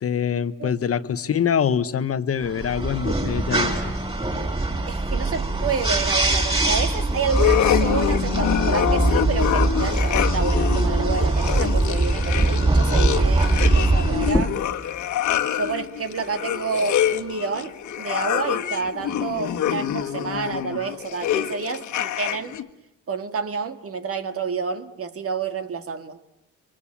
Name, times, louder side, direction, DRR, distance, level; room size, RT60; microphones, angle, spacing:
voice 1, 0.0-3.8, left 8 dB, 50° left, 1.2 m, -24 dB
sound 1, 2.4-14.3, right 2 dB, 20° right, 7.1 m, -22 dB
voice 2, 4.9-14.6 15.5-22.6 23.1-26.2, right 5 dB, 50° right, 2.0 m, -29 dB
sound 2, 7.2-22.6, left 10 dB, 75° left, 1.7 m, -26 dB
sound 3, 14.2-19.4 19.8-21.6, left 1 dB, 10° left, 1.7 m, -34 dB
27.5 x 24.0 x 8.6 m
cardioid pair, 90°, 30 cm